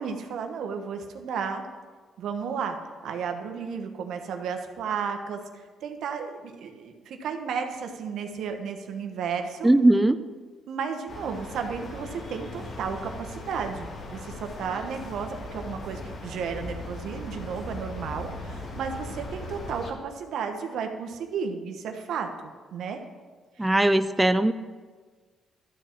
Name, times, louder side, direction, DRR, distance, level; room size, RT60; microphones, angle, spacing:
voice 1, 0.0-1.6 2.2-2.8 3.0-9.7 10.7-22.3 22.7-23.0 23.6-23.7, right 6 dB, 75° right, 5 dB, 1.1 m, -33 dB
voice 2, 9.6-10.2 23.6-24.5, right 1 dB, 10° right, 10 dB, 0.4 m, -19 dB
sound 1, 11.1-19.9, left 2 dB, 50° left, 1.7 m, -38 dB
12.5 x 4.5 x 7.1 m, 1.4 s
cardioid pair, 90°, 0 cm